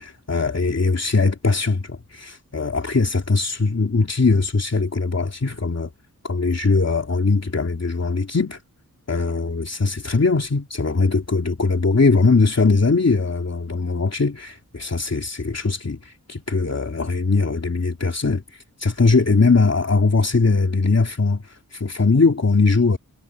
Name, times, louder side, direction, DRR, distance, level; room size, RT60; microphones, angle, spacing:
voice 1, 0.0-5.9 6.2-8.6 9.1-23.0, left 3 dB, 45° left, 2.9 m, -20 dB
wide cardioid pair, 100°, 35 cm